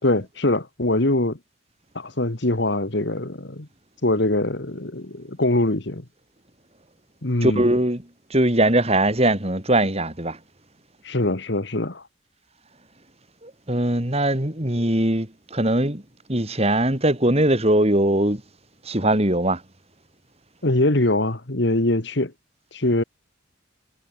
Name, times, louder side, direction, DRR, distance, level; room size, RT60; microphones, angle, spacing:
voice 1, 0.0-1.4 2.0-3.7 4.0-6.0 7.2-7.7 11.0-12.0 20.6-22.3 22.7-23.0, left 1 dB, 60° left, 1.9 m, -23 dB
voice 2, 7.4-8.0 8.3-10.4 13.4-16.0 16.3-18.4 18.9-19.6, right 1 dB, 30° right, 4.1 m, -21 dB
head